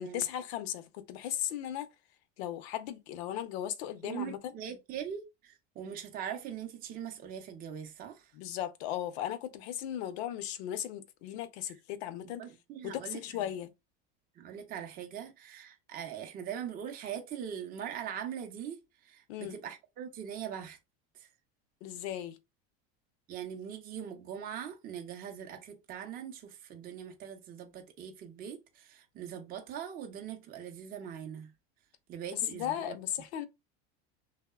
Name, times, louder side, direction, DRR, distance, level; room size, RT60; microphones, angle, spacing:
voice 1, 0.0-1.9 2.4-4.5 8.3-12.4 12.8-13.7 19.3-19.6 21.8-22.4 32.3-33.5, left 11 dB, 75° left, 0.5 m, -36 dB
voice 2, 4.0-8.3 12.2-13.4 14.4-20.8 21.1-21.3 23.3-31.5 32.1-32.9, right 8 dB, 30° right, 0.5 m, -41 dB
2.7 x 2.0 x 2.2 m
supercardioid pair, 125°, 32 cm